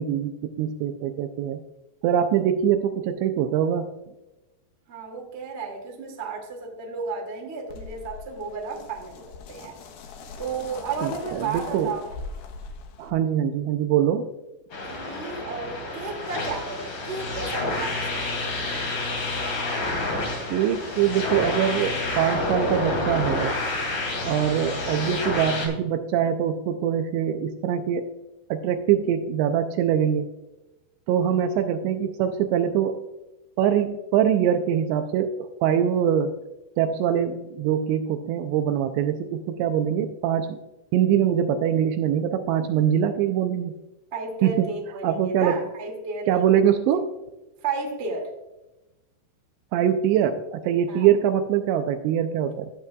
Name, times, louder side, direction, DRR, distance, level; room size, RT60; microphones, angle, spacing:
voice 1, 0.0-1.6 2.0-3.9 11.0-11.9 13.0-14.3 20.5-23.6 24.2-28.1 28.5-30.3 31.1-33.0 33.6-36.4 36.8-40.6 40.9-43.7 44.4-44.7 45.0-45.6 46.3-47.1 49.7-52.7, right 9 dB, 85° right, 7 dB, 2.6 m, -23 dB
voice 2, 4.9-9.8 10.4-12.2 14.9-18.9 44.1-46.4 47.6-48.3 50.9-51.1, right 4 dB, 55° right, 0 dB, 0.7 m, -33 dB
sound 1, 7.7-13.1, left 4 dB, 75° left, 2.3 m, -41 dB
sound 2, 14.7-25.7, left 2 dB, 45° left, 3.4 m, -29 dB
14.5 x 8.5 x 2.3 m, 1.0 s
omnidirectional pair, 5.5 m